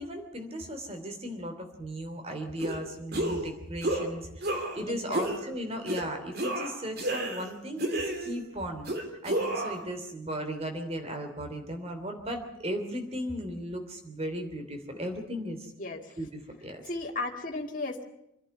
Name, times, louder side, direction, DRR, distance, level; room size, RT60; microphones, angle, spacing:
voice 1, 0.0-8.9 9.2-15.7 16.2-16.8, equal, 30° right, 6 dB, 3.1 m, -36 dB
sound 1, 2.6-2.8 3.1-3.5 3.8-4.1 4.4-4.8 5.1-5.4 5.9-6.0 6.3-7.5 7.8-8.4 8.9-9.8, right 1 dB, 50° right, 3.0 m, -31 dB
voice 2, 4.8-5.2 15.8-16.2 16.8-18.0, left 2 dB, 40° left, 0 dB, 2.2 m, -35 dB
27.0 x 11.0 x 9.8 m, 0.84 s
head